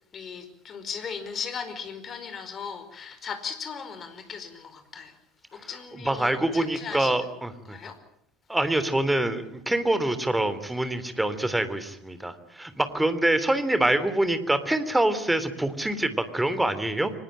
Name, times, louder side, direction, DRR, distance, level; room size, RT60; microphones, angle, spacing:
voice 1, 0.1-5.2 5.5-7.3 7.6-8.0, left 6 dB, 40° left, 4.9 m, -37 dB
voice 2, 6.0-7.8 8.5-17.1, right 1 dB, 10° right, 3.3 m, -25 dB
24.5 x 21.0 x 9.0 m
hypercardioid pair, 70°, 0 cm